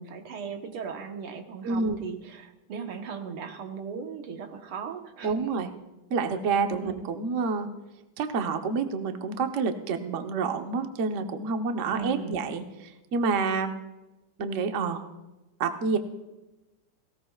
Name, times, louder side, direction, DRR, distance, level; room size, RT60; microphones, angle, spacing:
voice 1, 0.0-5.3 6.7-7.0 11.9-12.4, right 6 dB, 80° right, 5 dB, 2.1 m, -37 dB
voice 2, 1.6-2.0 5.2-5.7 6.1-7.7 8.2-13.7 14.4-15.1 15.6-16.0, right 4 dB, 50° right, 5 dB, 1.0 m, -28 dB
19.0 x 17.0 x 2.4 m, 1.0 s
omnidirectional pair, 2.3 m